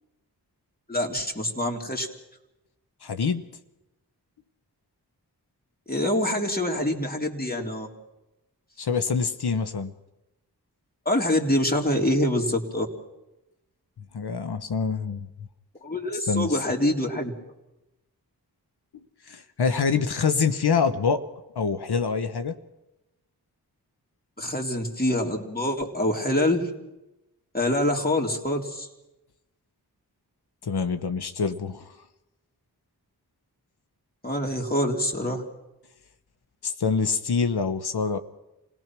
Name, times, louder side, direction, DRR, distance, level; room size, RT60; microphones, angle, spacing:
voice 1, 0.9-2.1 5.9-7.9 11.0-12.9 15.8-17.3 24.4-26.7 27.5-28.9 34.2-35.4, left 1 dB, 25° left, 2 dB, 3.3 m, -25 dB
voice 2, 3.0-3.4 8.8-9.9 14.1-15.3 16.3-16.6 19.3-21.2 21.5-22.6 30.6-31.9 36.6-38.2, left 5 dB, 75° left, 9 dB, 1.1 m, -25 dB
27.5 x 18.0 x 6.1 m, 0.95 s
cardioid pair, 40°, 39 cm